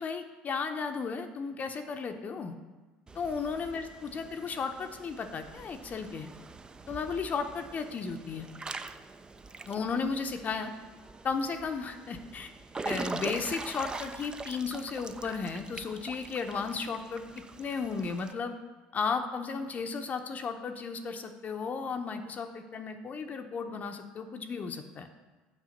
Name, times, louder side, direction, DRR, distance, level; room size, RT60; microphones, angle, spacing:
voice 1, 0.0-2.5 3.1-6.3 6.9-8.5 9.7-10.7 11.2-12.5 12.8-17.2 17.6-18.6 18.9-25.1, left 5 dB, 40° left, 6 dB, 0.7 m, -34 dB
Water / Splash splatter / Drip, 3.1-18.3, right 3 dB, 20° right, 0.4 m, -43 dB
6.6 x 4.8 x 6.4 m, 1.2 s
hypercardioid pair, 70°, 4 cm